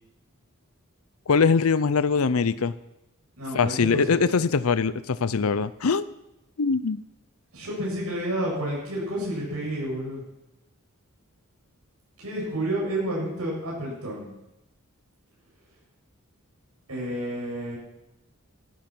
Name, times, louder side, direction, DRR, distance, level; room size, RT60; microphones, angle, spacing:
voice 1, 1.3-2.7 3.5-6.0 6.6-7.0, left 5 dB, 75° left, 15 dB, 0.6 m, -22 dB
voice 2, 3.4-4.3 7.5-10.2 12.2-14.3 16.9-17.8, right 1 dB, 85° right, -4 dB, 7.7 m, -30 dB
15.0 x 14.0 x 6.1 m, 0.89 s
head